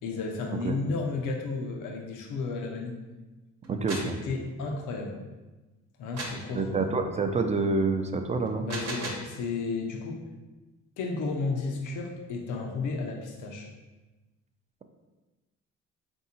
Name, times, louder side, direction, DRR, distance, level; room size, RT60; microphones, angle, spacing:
voice 1, 0.0-3.0 4.0-5.2 6.0-6.9 8.7-10.2 11.0-13.7, left 3 dB, 85° left, 1 dB, 0.6 m, -33 dB
sound 1, 3.6-4.2 6.2-6.5 8.5-9.3, right 2 dB, 60° right, 0.9 m, -36 dB
voice 2, 3.7-4.1 6.5-8.7, right 3 dB, 25° right, 6 dB, 0.4 m, -27 dB
3.6 x 2.7 x 4.2 m, 1.2 s
cardioid pair, 90°, 30 cm